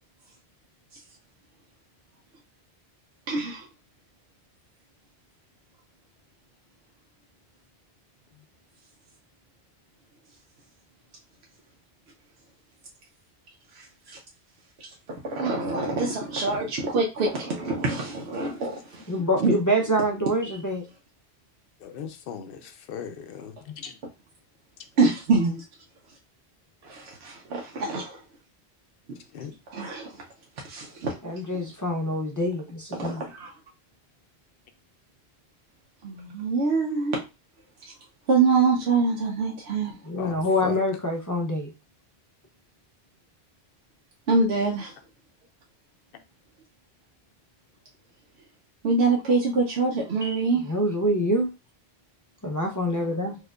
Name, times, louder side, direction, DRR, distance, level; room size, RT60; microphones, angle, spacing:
voice 1, 3.3-3.6 13.8-14.2 15.2-19.0 19.4-19.5 25.0-25.6 26.8-28.2 29.7-30.1 30.6-31.1 32.9-33.5 36.0-37.2 38.3-40.0 44.3-44.9 48.8-50.6, right 4 dB, 80° right, 0.9 m, -25 dB
voice 2, 19.1-20.8 31.2-33.2 40.1-41.7 50.2-51.5 52.4-53.4, equal, 30° left, 0.4 m, -26 dB
voice 3, 21.8-24.0 29.3-29.5 40.2-40.8, left 7 dB, 65° left, 0.7 m, -38 dB
4.4 x 2.4 x 2.3 m
omnidirectional pair, 1.1 m